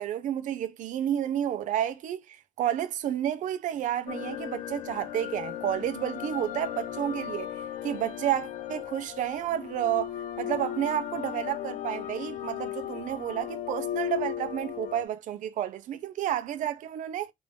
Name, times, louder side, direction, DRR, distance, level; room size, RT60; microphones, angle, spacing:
voice 1, 0.0-7.5 7.8-10.1 10.4-17.3, right 11 dB, 75° right, 0.6 m, -31 dB
sound 1, 4.1-15.0, left 11 dB, 75° left, 0.5 m, -36 dB
3.7 x 2.5 x 3.6 m
cardioid pair, 155°, 13 cm